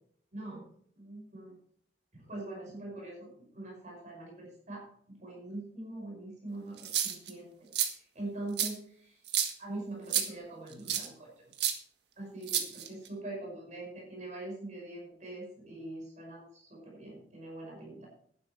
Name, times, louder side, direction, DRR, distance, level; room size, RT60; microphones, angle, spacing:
voice 1, 0.3-0.6 0.9-1.5 2.1-9.2 9.6-11.3 12.2-18.1, right 2 dB, 45° right, -2 dB, 5.5 m, -43 dB
sound 1, 6.8-7.3 7.7-7.9 8.6-8.7 9.3-9.5 10.1-10.3 10.9-11.1 11.6-11.7 12.5-13.1, right 9 dB, 70° right, 1.6 m, -30 dB
11.5 x 10.0 x 4.4 m, 0.63 s
head